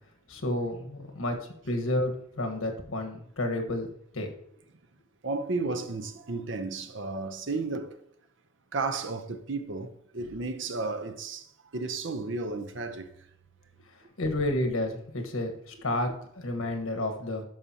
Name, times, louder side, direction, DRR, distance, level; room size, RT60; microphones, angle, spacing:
voice 1, 0.3-1.4 1.6-3.9 4.1-4.3 14.2-17.4, left 1 dB, 85° left, 1.4 m, -30 dB
voice 2, 5.2-8.0 8.7-11.5 11.7-13.1, right 3 dB, 60° right, 0.7 m, -33 dB
12.0 x 5.1 x 2.9 m
head